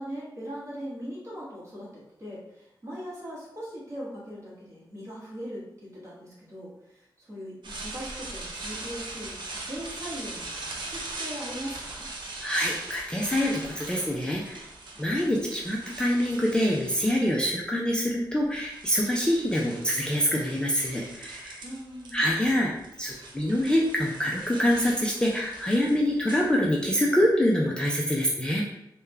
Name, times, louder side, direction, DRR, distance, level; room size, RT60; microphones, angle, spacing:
voice 1, 0.0-1.9 2.2-6.7 7.2-12.1 14.9-15.2 21.6-22.2, equal, 40° right, -7 dB, 1.2 m, -40 dB
sound 1, 7.6-17.5 18.3-22.1 22.4-27.0, right 2 dB, 75° right, 0.6 m, -41 dB
voice 2, 12.4-14.6 15.0-21.6 22.1-22.7 23.0-28.6, equal, 10° left, -3 dB, 0.4 m, -25 dB
3.4 x 2.2 x 3.3 m, 0.84 s
wide cardioid pair, 140°, 8 cm